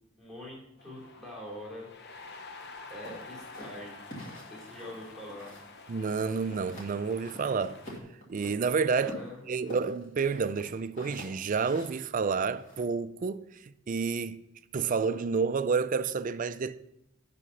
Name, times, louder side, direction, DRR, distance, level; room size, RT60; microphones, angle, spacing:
voice 1, 0.2-1.9 2.9-4.0 4.3-5.5 9.0-9.4, left 1 dB, 5° left, 2.8 m, -44 dB
sound 1, 0.8-8.0, left 3 dB, 55° left, 0.9 m, -49 dB
sound 2, 3.0-5.7 6.0-6.9 7.2-8.6 9.0-12.8, equal, 40° left, 2.5 m, -46 dB
voice 2, 5.9-7.8 8.3-9.1 9.5-14.4 14.7-16.8, right 5 dB, 40° right, 0.4 m, -29 dB
11.5 x 4.2 x 5.5 m
head